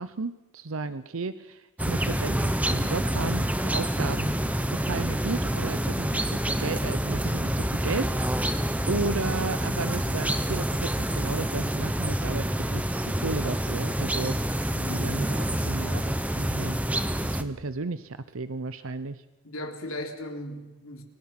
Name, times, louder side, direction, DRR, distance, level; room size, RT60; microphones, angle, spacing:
voice 1, 0.0-4.3 4.7-16.8 17.1-19.2, right 3 dB, 80° right, 12 dB, 0.8 m, -34 dB
sound 1, 1.8-17.4, right 1 dB, 5° right, 1.1 m, -27 dB
voice 2, 14.8-15.1 19.4-21.0, left 1 dB, 80° left, 3 dB, 3.7 m, -37 dB
30.0 x 23.5 x 6.0 m, 1.1 s
head